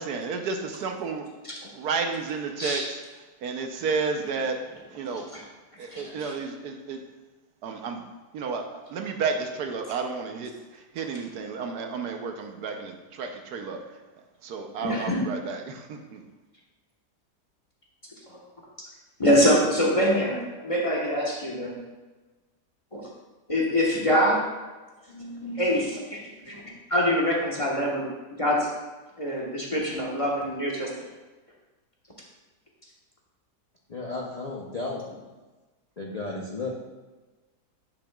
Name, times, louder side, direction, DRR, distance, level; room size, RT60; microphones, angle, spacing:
voice 1, 0.0-1.3 1.7-3.0 3.4-4.6 4.9-5.3 5.8-7.0 7.6-8.0 8.3-10.5 10.9-13.8 14.4-16.2, right 5 dB, 70° right, 4 dB, 1.2 m, -31 dB
voice 2, 5.1-5.4 5.9-6.3 14.8-15.2 19.2-21.8 22.9-23.0 23.5-24.4 25.1-26.6 26.9-28.1 28.4-28.7 29.2-31.0, equal, 25° left, -3 dB, 1.0 m, -25 dB
voice 3, 33.9-35.0 36.0-36.7, left 3 dB, 70° left, -3 dB, 0.3 m, -33 dB
10.0 x 5.9 x 2.3 m, 1.2 s
omnidirectional pair, 1.8 m